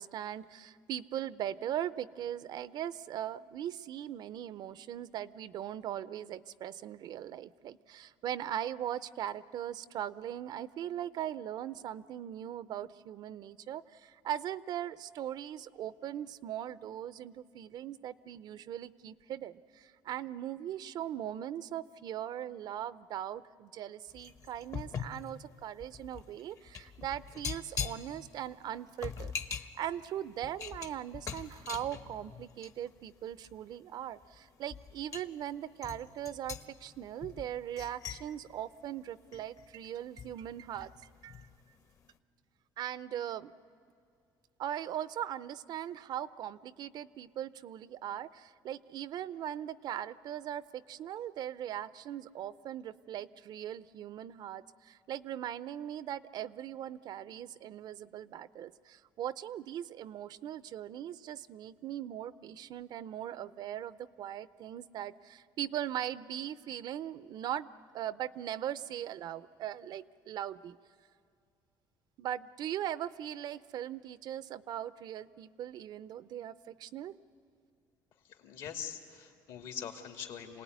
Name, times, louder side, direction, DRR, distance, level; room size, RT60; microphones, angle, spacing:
voice 1, 0.0-40.9 41.2-41.5 42.8-43.5 44.6-70.8 72.2-77.2, right 11 dB, 55° right, 16 dB, 0.6 m, -40 dB
sound 1, 24.1-32.9 33.3-33.6 34.2-34.4 34.7-35.3 35.8-39.7 40.2-41.5 41.8-42.0, left 6 dB, 40° left, 1.0 m, -42 dB
voice 2, 78.3-80.6, left 8 dB, 70° left, 4 dB, 2.7 m, -43 dB
27.0 x 18.5 x 9.5 m, 2.4 s
cardioid pair, 125°, 8 cm